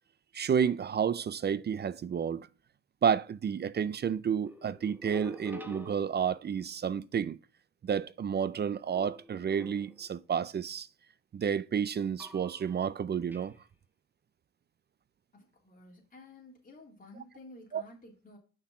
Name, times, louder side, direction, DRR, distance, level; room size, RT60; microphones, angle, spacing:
voice 1, 0.3-2.5 3.0-7.4 7.8-10.9 11.3-13.6 17.7-17.8, right 7 dB, 35° right, 0.5 m, -30 dB
sound 1, 4.5-6.6 8.9-10.2 12.2-12.9 13.3-13.5, left 1 dB, 5° right, 1.3 m, -47 dB
voice 2, 15.3-18.4, left 2 dB, 30° left, 3.4 m, -52 dB
6.3 x 5.9 x 5.9 m
cardioid pair, 90°, 30 cm